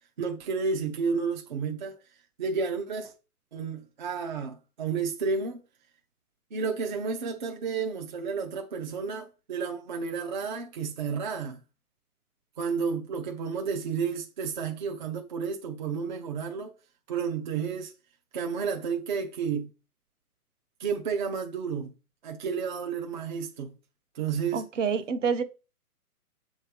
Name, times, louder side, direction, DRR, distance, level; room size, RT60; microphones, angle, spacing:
voice 1, 0.2-2.0 2.4-3.1 3.5-5.6 6.5-11.6 12.6-16.7 17.1-17.9 18.3-19.7 20.8-21.9 22.2-23.7 24.1-24.7, right 5 dB, 30° right, 0.6 m, -31 dB
voice 2, 24.5-25.4, right 6 dB, 50° right, 1.1 m, -27 dB
7.7 x 3.1 x 5.1 m
hypercardioid pair, 150°, 46 cm